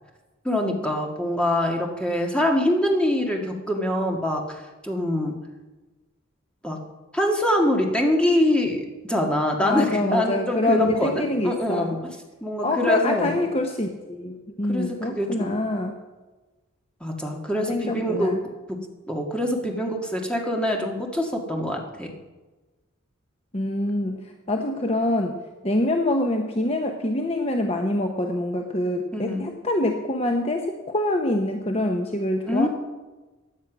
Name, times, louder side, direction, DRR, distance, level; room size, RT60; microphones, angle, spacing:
voice 1, 0.4-5.3 6.6-6.8 7.1-12.0 12.4-13.3 14.7-15.6 17.0-18.4 18.7-18.8 19.1-22.1 29.1-29.5 32.5-32.7, left 1 dB, 5° left, 1 dB, 1.8 m, -24 dB
voice 2, 9.6-12.0 12.6-15.9 17.7-18.4 23.5-24.2 24.5-32.7, left 1 dB, 30° left, 4 dB, 0.9 m, -25 dB
16.0 x 10.0 x 6.1 m, 1.2 s
head